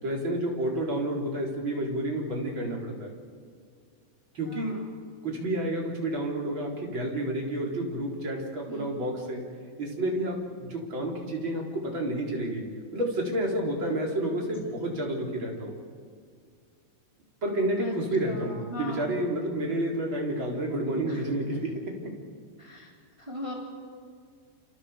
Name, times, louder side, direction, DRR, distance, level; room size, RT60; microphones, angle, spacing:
voice 1, 0.0-3.1 4.3-4.8 5.2-9.4 9.8-12.6 12.9-15.7 17.4-22.1, right 1 dB, 25° right, -1 dB, 4.2 m, -30 dB
voice 2, 4.5-4.8 8.7-8.9 14.1-14.7 17.8-17.9 18.2-19.0 21.0-21.2 22.6-22.9 23.2-23.5, equal, 5° right, -2 dB, 3.7 m, -40 dB
29.5 x 29.0 x 5.2 m, 2.1 s
omnidirectional pair, 5.7 m